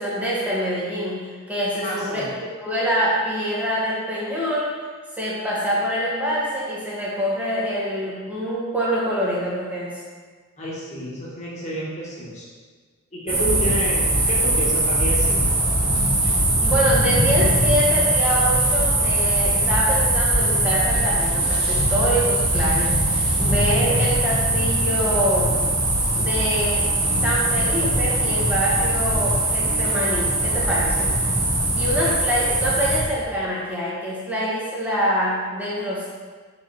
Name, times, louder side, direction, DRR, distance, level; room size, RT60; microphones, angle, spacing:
voice 1, 0.0-4.7 5.2-10.0 16.3-25.6 26.1-26.9 27.2-31.1 31.8-36.1, equal, 5° right, -7 dB, 1.8 m, -25 dB
voice 2, 1.8-2.3 10.6-12.5 13.1-15.6 32.0-32.1, right 1 dB, 30° left, -7 dB, 2.1 m, -30 dB
sound 1, 13.3-33.0, right 1 dB, 25° right, 1.5 m, -21 dB
6.7 x 5.6 x 4.6 m, 1.5 s
head